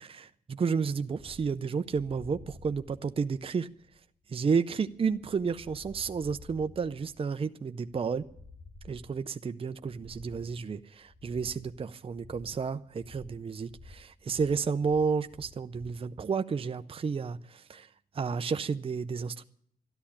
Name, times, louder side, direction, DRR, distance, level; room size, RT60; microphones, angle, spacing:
voice 1, 0.0-3.7 4.3-8.2 8.8-17.9 18.1-19.4, right 5 dB, 35° right, 9 dB, 0.6 m, -31 dB
sound 1, 1.1-16.0, left 2 dB, 10° left, 1.1 m, -53 dB
13.0 x 11.0 x 8.5 m, 0.67 s
cardioid pair, 80°, 16 cm